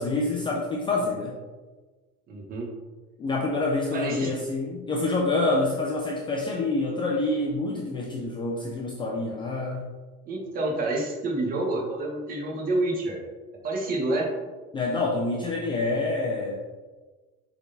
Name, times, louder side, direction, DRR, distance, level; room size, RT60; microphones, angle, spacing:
voice 1, 0.0-1.4 3.2-9.9 14.7-16.6, left 2 dB, 15° left, -2 dB, 0.4 m, -27 dB
voice 2, 2.3-2.7 3.9-4.3 10.3-13.2 13.6-14.3, right 2 dB, 30° right, 0 dB, 1.3 m, -28 dB
7.1 x 4.1 x 4.0 m, 1.3 s
cardioid pair, 175°, 31 cm